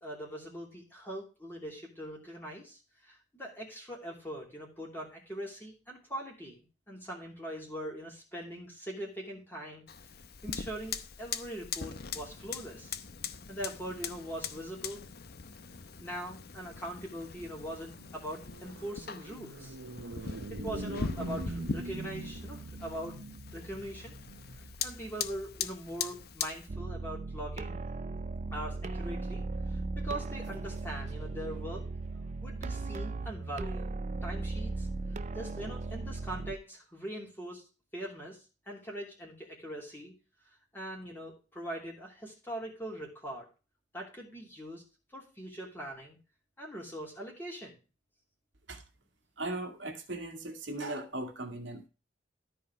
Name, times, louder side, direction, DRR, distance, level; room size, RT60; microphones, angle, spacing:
voice 1, 0.0-6.6 6.9-9.9 10.4-13.0 13.5-15.1 16.0-19.8 20.2-23.2 23.5-24.1 24.8-27.8 28.5-31.8 32.4-33.9 34.2-34.9 35.3-37.6 37.9-40.1 40.4-43.5 43.9-44.8 45.1-46.2 46.6-47.8, right 1 dB, 10° left, 2.9 m, -42 dB
Fire, 9.9-26.7, left 6 dB, 50° left, 0.8 m, -41 dB
sound 1, 17.4-26.9, right 2 dB, 85° right, 0.9 m, -44 dB
sound 2, 26.7-36.6, right 3 dB, 35° right, 0.4 m, -37 dB
voice 2, 49.4-51.9, right 2 dB, 70° right, 2.0 m, -38 dB
13.5 x 4.8 x 4.6 m
head